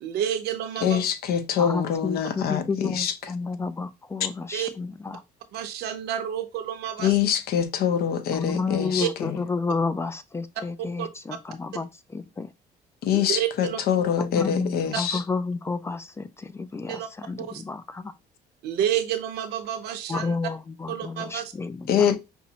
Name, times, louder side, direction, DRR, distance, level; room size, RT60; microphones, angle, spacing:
voice 1, 0.0-1.0 4.5-4.7 5.5-7.1 8.8-9.1 11.0-11.1 13.1-13.8 14.9-15.0 16.9-17.1 17.4-17.6 18.6-20.4 20.9-21.5, right 10 dB, 75° right, 0.7 m, -29 dB
voice 2, 0.8-3.3 7.0-9.4 13.0-15.2 21.9-22.2, left 8 dB, 65° left, 0.6 m, -25 dB
voice 3, 1.6-5.2 8.3-11.9 12.1-12.5 14.2-18.1 20.1-22.0, left 4 dB, 15° left, 0.3 m, -30 dB
5.3 x 2.0 x 2.8 m
cardioid pair, 110°, 17 cm